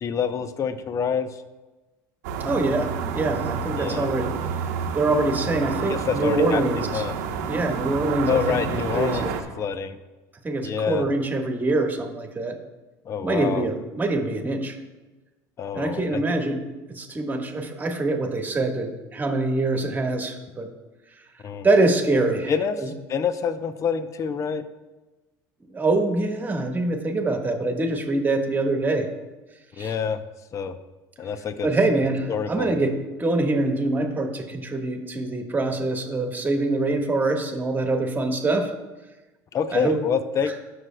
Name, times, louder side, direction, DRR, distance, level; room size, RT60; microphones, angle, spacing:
voice 1, 0.0-1.4 3.8-4.1 5.9-7.2 8.3-9.3 9.6-10.0 10.6-11.1 13.1-13.7 15.6-16.2 21.4-21.7 22.5-24.6 29.8-30.2 30.5-30.8 31.2-31.7 32.3-32.7 39.5-40.5, left 6 dB, 35° left, 11 dB, 0.6 m, -27 dB
sound 1, 2.2-9.4, right 6 dB, 85° right, 0.9 m, -29 dB
voice 2, 2.4-4.3 4.9-7.0 7.5-9.3 10.4-12.5 13.2-14.8 15.7-16.6 16.9-20.7 21.6-22.5 22.8-22.9 25.7-29.1 29.8-29.9 31.6-38.7 39.7-40.0, right 2 dB, 20° right, 4 dB, 1.4 m, -24 dB
18.0 x 6.4 x 2.2 m, 1.1 s
supercardioid pair, 100°, 9 cm